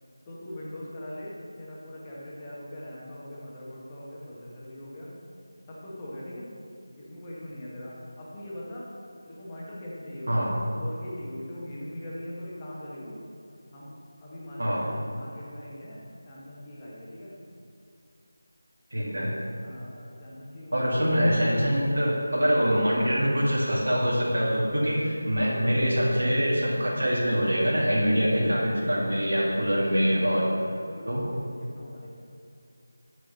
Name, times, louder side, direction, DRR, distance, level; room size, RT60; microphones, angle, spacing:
voice 1, 0.2-5.1 5.7-6.5 6.9-8.9 9.2-13.1 13.7-13.9 14.2-16.0 16.3-17.3 19.5-21.1 28.6-31.4 31.7-32.1, left 1 dB, 20° left, -7 dB, 1.6 m, -41 dB
voice 2, 18.9-19.3 20.7-30.5 31.1-31.2, equal, 75° right, -6 dB, 2.2 m, -24 dB
9.0 x 5.1 x 5.4 m, 2.5 s
figure-of-eight pair, 170°, 0 cm